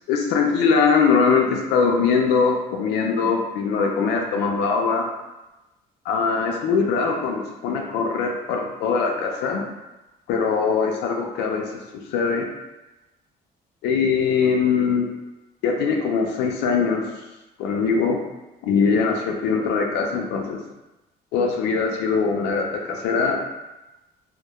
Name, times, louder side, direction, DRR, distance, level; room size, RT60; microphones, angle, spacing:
voice 1, 0.1-5.1 6.1-9.7 10.3-12.5 13.8-15.1 15.6-17.1 17.6-18.2 18.6-20.6 21.3-23.4, left 5 dB, 85° left, 2 dB, 0.4 m, -22 dB
2.1 x 2.1 x 2.8 m, 1.0 s
cardioid pair, 110°, 17 cm